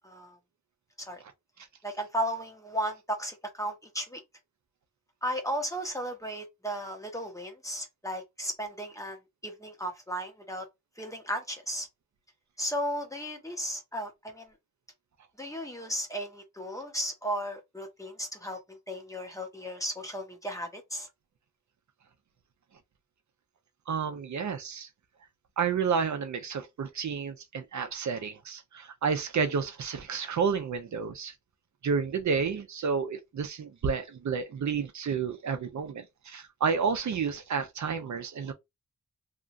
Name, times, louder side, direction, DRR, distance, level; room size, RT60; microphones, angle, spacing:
voice 1, 0.0-0.4 1.0-1.2 1.8-4.2 5.2-10.7 11.0-11.9 12.6-14.5 15.4-21.1, equal, 10° left, 0.7 m, -35 dB
voice 2, 23.9-24.9 25.6-31.3 31.8-38.5, right 6 dB, 65° right, 0.5 m, -30 dB
2.9 x 2.3 x 2.5 m
wide cardioid pair, 115°, 32 cm